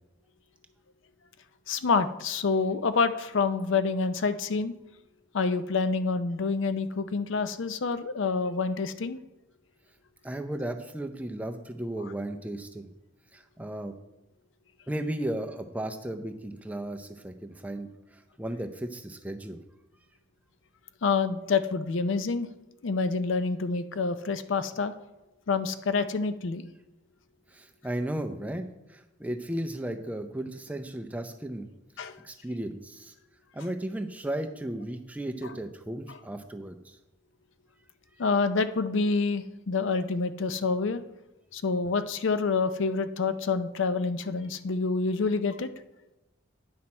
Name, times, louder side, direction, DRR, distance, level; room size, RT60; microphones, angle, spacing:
voice 1, 1.7-4.7 5.3-9.2 21.0-22.5 22.8-24.9 25.5-26.6 32.0-32.1 35.4-35.5 36.1-36.2 38.2-41.0 41.5-45.7, left 4 dB, 70° left, 11 dB, 0.5 m, -27 dB
voice 2, 10.2-12.9 13.3-13.9 14.9-19.6 27.5-31.7 32.2-33.1 33.5-37.0, right 1 dB, 5° right, 5 dB, 0.5 m, -35 dB
9.5 x 6.1 x 4.3 m, 1.0 s
head